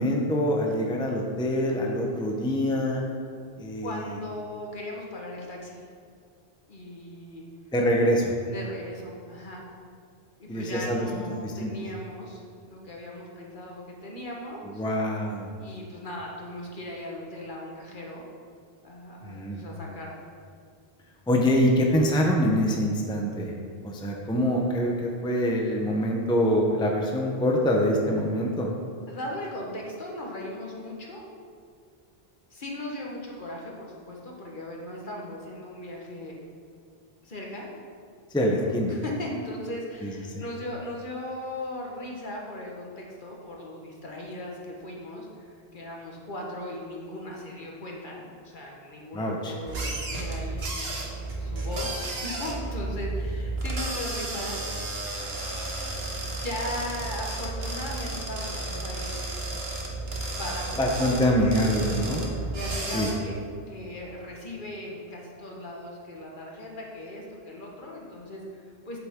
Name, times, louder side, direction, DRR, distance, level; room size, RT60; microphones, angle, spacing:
voice 1, 0.0-3.0 3.6-4.0 7.7-8.3 10.5-11.1 11.4-11.7 14.7-15.5 19.2-19.6 21.3-23.5 23.8-28.7 38.3-39.0 40.0-40.4 49.1-49.5 60.8-62.2 62.9-63.1, equal, 5° left, -1 dB, 0.7 m, -25 dB
voice 2, 3.8-5.9 6.7-7.4 8.4-9.6 10.4-14.8 15.6-18.2 18.8-20.2 29.1-31.3 32.5-36.4 37.2-37.7 38.6-51.0 51.4-54.6 56.4-59.3 60.3-62.1 62.5-69.0, left 1 dB, 50° left, -2 dB, 1.4 m, -38 dB
sound 1, 49.7-63.1, right 2 dB, 70° right, 1.4 m, -32 dB
8.1 x 7.9 x 3.7 m, 2.1 s
omnidirectional pair, 1.1 m